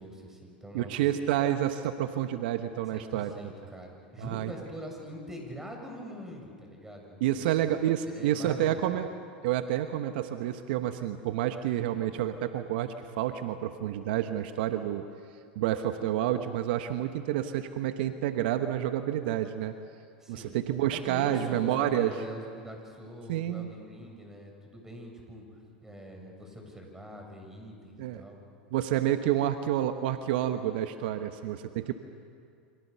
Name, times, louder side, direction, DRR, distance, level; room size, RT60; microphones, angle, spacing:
voice 1, 0.0-1.1 2.9-7.5 8.0-8.9 20.2-20.6 20.9-28.4, equal, 10° right, 2 dB, 7.4 m, -44 dB
voice 2, 0.7-3.3 4.2-4.5 7.2-9.1 9.4-15.0 15.5-19.7 20.3-22.1 23.3-23.7 28.0-28.2 28.7-31.9, right 12 dB, 65° right, 8 dB, 1.1 m, -29 dB
29.0 x 26.0 x 6.9 m, 2.3 s
hypercardioid pair, 90°, 6 cm